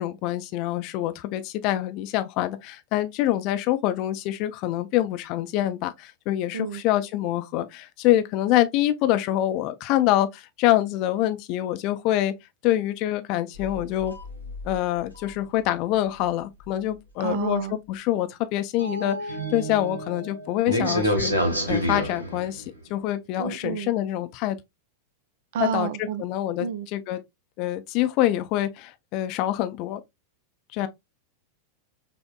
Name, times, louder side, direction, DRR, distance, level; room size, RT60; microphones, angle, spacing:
voice 1, 0.0-12.3 12.6-14.1 14.6-21.3 21.7-22.6 22.9-24.6 25.6-27.2 27.6-30.0 30.7-30.9, left 13 dB, 40° left, 0.5 m, -25 dB
sound 1, 13.5-15.3 15.7-15.8 16.2-16.3 16.6-16.7 18.8-22.7, equal, 80° right, 0.8 m, -29 dB
voice 2, 17.2-17.8 20.8-21.0 23.4-23.9 25.5-26.2 26.6-26.9, right 8 dB, 55° right, 0.4 m, -30 dB
5.6 x 2.1 x 2.3 m
figure-of-eight pair, 90°, 0 cm